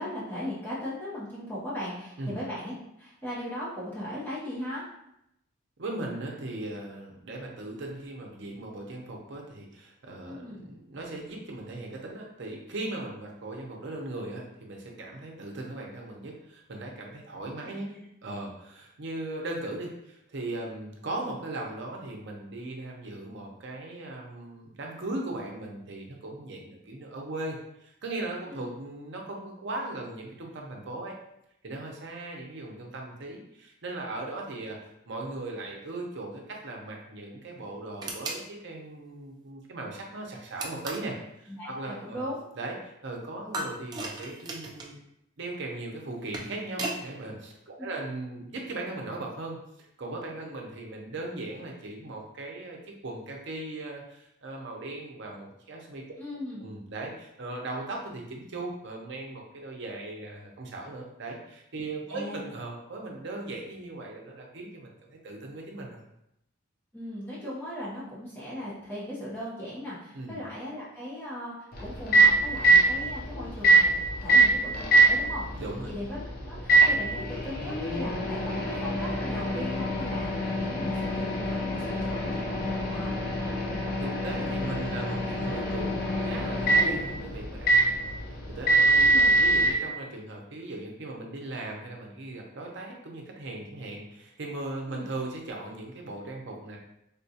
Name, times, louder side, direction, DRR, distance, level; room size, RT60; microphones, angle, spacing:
voice 1, 0.0-4.8 10.3-10.7 17.6-18.0 28.5-28.7 41.5-42.4 47.8-47.9 56.2-56.6 62.1-62.4 66.9-76.2 76.5-83.1 88.9-89.3 94.9-95.1, left 1 dB, 10° left, -9 dB, 0.7 m, -38 dB
voice 2, 5.8-17.9 18.2-31.1 31.6-42.2 42.6-45.0 45.4-52.8 53.0-56.0 56.6-66.0 70.1-70.3 75.6-75.9 84.0-88.0 88.5-96.8, right 2 dB, 60° right, 0 dB, 0.6 m, -38 dB
sound 1, 38.0-38.4 40.6-41.1 43.5-44.9 46.1-47.0, right 2 dB, 20° right, 0.3 m, -36 dB
Microwave oven, 71.7-89.7, right 2 dB, 45° left, 0.5 m, -24 dB
3.6 x 2.3 x 2.7 m, 0.80 s
head